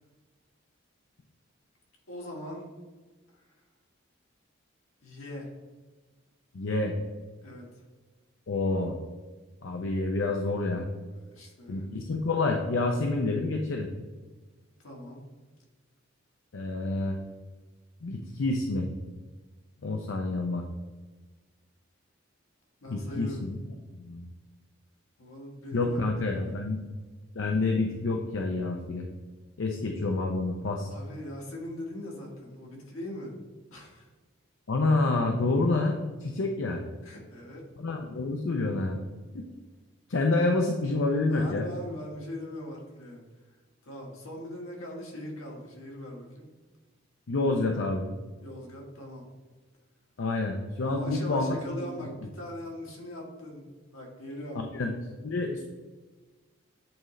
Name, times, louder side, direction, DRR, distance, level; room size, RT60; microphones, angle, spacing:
voice 1, 2.1-2.7 3.3-3.5 5.0-5.5 7.4-7.7 11.1-11.9 14.8-15.2 22.8-23.4 25.2-26.7 30.9-33.4 33.7-34.1 37.0-37.7 41.3-43.2 43.8-46.5 48.4-49.3 50.8-54.6, left 1 dB, 85° left, -1 dB, 1.6 m, -41 dB
voice 2, 6.5-7.0 8.5-9.0 9.6-10.9 11.7-13.9 16.5-17.2 18.0-18.9 19.8-20.6 22.9-23.6 23.9-24.2 25.7-26.8 27.4-29.1 29.6-30.9 34.7-35.9 36.2-36.8 37.8-39.0 40.1-41.7 47.3-48.1 50.2-51.9 54.5-54.9 55.2-55.6, left 2 dB, 65° left, 2 dB, 0.5 m, -28 dB
8.6 x 3.7 x 3.2 m, 1.3 s
head